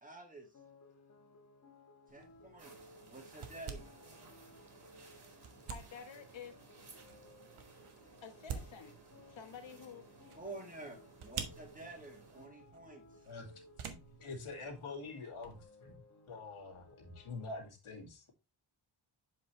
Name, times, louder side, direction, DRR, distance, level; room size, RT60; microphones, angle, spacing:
voice 1, 0.0-0.5 2.1-3.9 10.4-13.0, right 2 dB, 15° right, 1.9 m, -50 dB
sound 1, 0.5-17.7, left 2 dB, 35° left, 1.6 m, -61 dB
sound 2, 2.1-15.6, right 6 dB, 85° right, 1.3 m, -50 dB
sound 3, 2.6-12.5, right 3 dB, 50° right, 2.2 m, -59 dB
voice 2, 5.7-6.6 8.2-9.0 9.3-10.1, left 7 dB, 65° left, 1.4 m, -50 dB
voice 3, 14.2-16.0 16.3-18.3, left 3 dB, 90° left, 2.4 m, -46 dB
7.7 x 5.5 x 3.3 m
wide cardioid pair, 180°, 49 cm